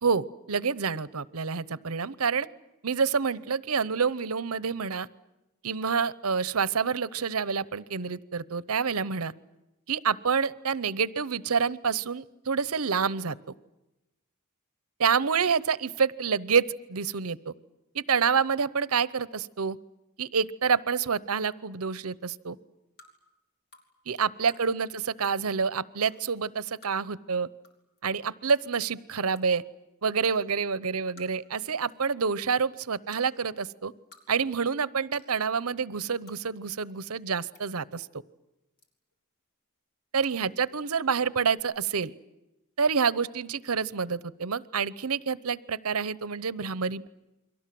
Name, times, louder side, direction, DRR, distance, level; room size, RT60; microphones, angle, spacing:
voice 1, 0.0-2.5 2.8-5.1 5.6-9.3 9.9-13.4 15.0-17.5 17.9-19.8 20.2-22.6 24.1-27.5 28.0-29.6 30.0-33.9 34.3-38.1 40.1-42.1 42.8-47.1, right 5 dB, 80° right, 18 dB, 0.9 m, -28 dB
sound 1, 23.0-23.1 23.7-23.8 24.4-24.6 25.2-25.4 26.0-26.1 26.8-26.9 27.6-27.7 28.0-28.1 28.5-28.7 29.3-29.4 30.2-30.4 31.2-31.5 31.8-32.1 33.1-33.2 33.9-34.2 34.5-34.6 35.1-35.3 36.2-36.4 37.2-37.6 38.8-39.1 40.2-40.4 41.5-41.6, left 2 dB, 50° left, 4.9 m, -54 dB
29.5 x 23.5 x 7.7 m, 0.97 s
head